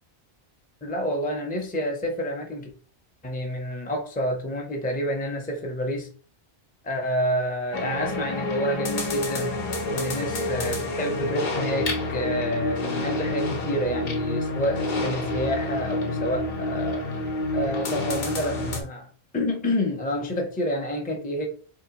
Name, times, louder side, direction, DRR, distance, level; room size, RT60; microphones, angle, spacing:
voice 1, 0.8-2.7 3.2-6.1 6.8-9.6 9.9-17.1 17.5-19.1 19.3-21.5, equal, 10° left, 0.6 m, -29 dB
sound 1, 7.7-18.8, left 2 dB, 50° left, 0.9 m, -28 dB
3.6 x 3.4 x 2.8 m
omnidirectional pair, 1.1 m